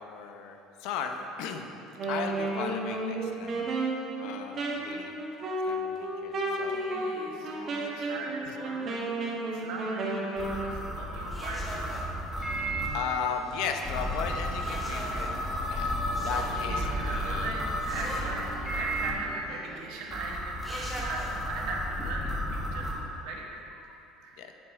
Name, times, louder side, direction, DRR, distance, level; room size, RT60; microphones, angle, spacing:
voice 1, 0.0-1.7 2.1-3.7 4.2-5.1 5.7-7.0 8.4-8.5 12.9-17.5 18.5-18.7 23.9-24.0 24.4-24.5, left 6 dB, 75° left, 5 dB, 0.7 m, -36 dB
Wind instrument woodwind instrument, 1.9-10.6, right 2 dB, 35° right, 1.5 m, -32 dB
voice 2, 6.4-11.8 16.1-16.2 16.5-23.6 24.2-24.5, right 3 dB, 80° right, -2 dB, 1.6 m, -39 dB
sound 1, 10.4-12.9 13.8-19.1 20.1-22.9, equal, 5° left, 1.4 m, -32 dB
sound 2, 12.4-19.8, right 1 dB, 45° left, 2.2 m, -45 dB
9.8 x 8.0 x 3.6 m, 2.9 s
cardioid pair, 140°, 0 cm